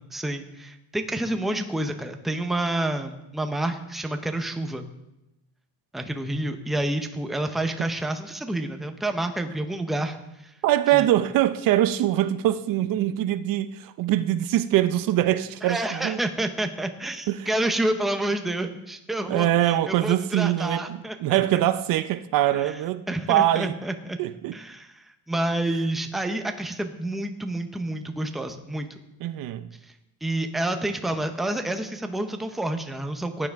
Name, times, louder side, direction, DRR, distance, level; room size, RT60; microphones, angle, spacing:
voice 1, 0.0-4.9 5.9-10.2 10.4-10.5 10.9-11.1 15.6-21.4 22.5-22.7 23.1-24.2 24.5-29.0 30.2-33.5, right 1 dB, ahead, 0.6 m, -29 dB
voice 2, 10.6-16.2 17.3-17.5 19.3-23.7 24.2-24.6 29.2-29.7, right 13 dB, 55° right, 0.5 m, -23 dB
16.0 x 9.7 x 3.5 m
cardioid pair, 150°, 41 cm